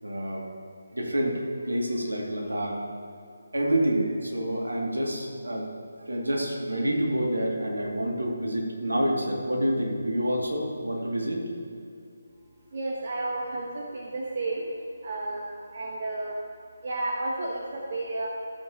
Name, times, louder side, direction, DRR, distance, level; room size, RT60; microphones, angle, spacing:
voice 1, 0.0-0.5 0.9-2.8 3.5-5.7 6.0-11.4, right 1 dB, 75° right, -1 dB, 2.1 m, -28 dB
voice 2, 12.7-14.6 15.0-16.4 16.8-18.3, right 2 dB, 45° right, -2 dB, 1.1 m, -32 dB
15.0 x 7.7 x 2.8 m, 2.5 s
figure-of-eight pair, 150°, 0 cm